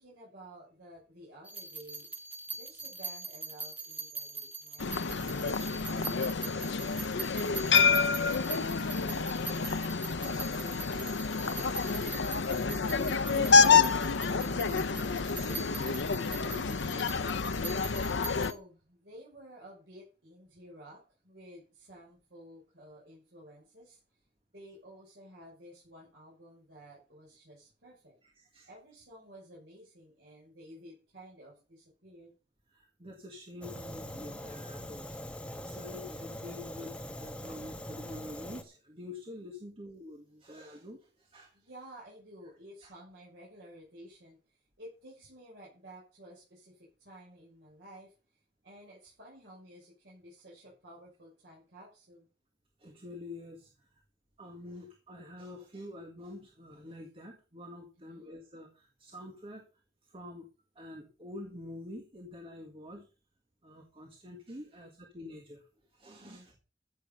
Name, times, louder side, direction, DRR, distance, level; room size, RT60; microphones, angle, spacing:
voice 1, 0.0-2.1 2.5-5.4 5.8-7.0 7.6-11.6 18.4-24.2 24.5-28.2 28.7-32.3 41.5-52.3 58.0-58.3 66.2-66.5, equal, 75° right, -5 dB, 6.4 m, -53 dB
sound 1, 1.4-18.5, right 4 dB, 10° right, 2.0 m, -43 dB
sound 2, 4.8-18.5, left 5 dB, 85° left, 0.7 m, -28 dB
voice 2, 12.4-17.4 28.2-28.7 32.7-35.2 35.6-41.6 42.8-42.9 52.8-54.0 54.4-59.7 60.0-60.5 60.8-63.1 63.6-66.5, left 1 dB, 30° right, 3 dB, 1.8 m, -47 dB
Fire, 33.6-38.6, equal, 5° left, 1.3 m, -42 dB
14.0 x 7.6 x 5.6 m, 0.34 s
head